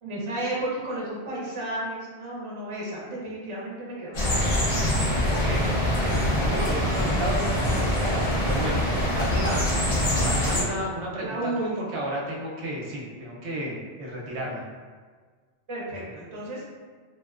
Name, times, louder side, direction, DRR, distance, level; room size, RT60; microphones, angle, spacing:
voice 1, 0.0-4.5 6.3-6.5 11.2-11.8 15.7-16.6, right 1 dB, 35° right, -5 dB, 0.5 m, -33 dB
sound 1, 4.1-10.6, left 1 dB, 45° left, 0.6 m, -24 dB
voice 2, 5.3-5.7 6.0-9.6 10.1-14.6, equal, 85° right, -3 dB, 0.9 m, -32 dB
2.7 x 2.0 x 2.4 m, 1.5 s
omnidirectional pair, 1.1 m